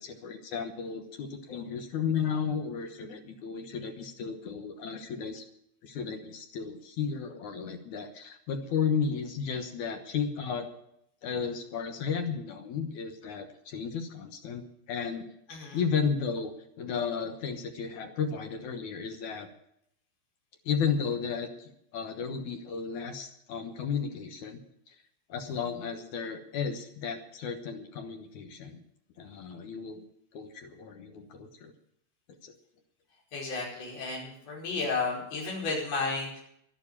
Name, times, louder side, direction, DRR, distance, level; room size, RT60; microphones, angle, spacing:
voice 1, 0.0-5.4 5.8-10.7 11.2-15.3 15.5-16.5 16.8-19.5 20.7-24.6 24.9-25.0 25.3-28.8 29.2-30.0 30.3-31.7 32.4-32.5, left 6 dB, 70° left, 5 dB, 1.8 m, -33 dB
voice 2, 15.5-15.8 33.3-36.4, left 3 dB, 40° left, -2 dB, 5.8 m, -33 dB
12.0 x 11.5 x 8.6 m, 0.75 s
omnidirectional pair, 5.1 m